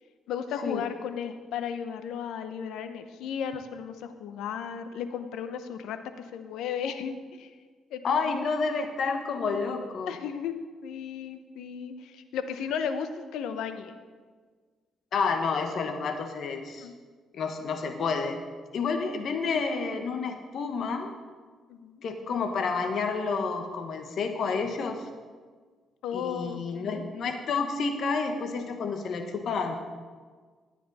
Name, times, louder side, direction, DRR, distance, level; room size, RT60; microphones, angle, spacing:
voice 1, 0.3-7.5 7.9-8.0 8.3-8.5 10.1-14.0 16.8-16.9 21.7-22.0 26.0-27.0, left 7 dB, 85° left, 9 dB, 0.8 m, -35 dB
voice 2, 8.0-10.1 15.1-16.9 17.3-18.4 18.7-21.1 22.0-25.1 26.1-29.8, left 4 dB, 65° left, 6 dB, 1.4 m, -29 dB
14.0 x 9.3 x 4.2 m, 1.5 s
cardioid pair, 90°, 0 cm